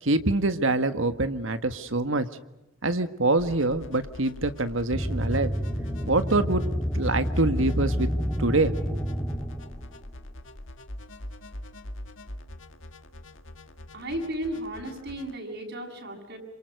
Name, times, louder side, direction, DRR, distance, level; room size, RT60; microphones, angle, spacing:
voice 1, 0.0-2.3 2.8-5.5 6.1-6.7 6.9-8.1 8.4-9.0, right 2 dB, 75° right, 10 dB, 1.7 m, -25 dB
sound 1, 3.4-15.4, left 1 dB, 70° left, 1.8 m, -44 dB
sound 2, 4.9-10.0, equal, 10° left, 3.0 m, -29 dB
voice 2, 13.9-16.4, right 1 dB, 60° right, 1 dB, 7.8 m, -34 dB
28.5 x 27.0 x 6.6 m, 0.96 s
head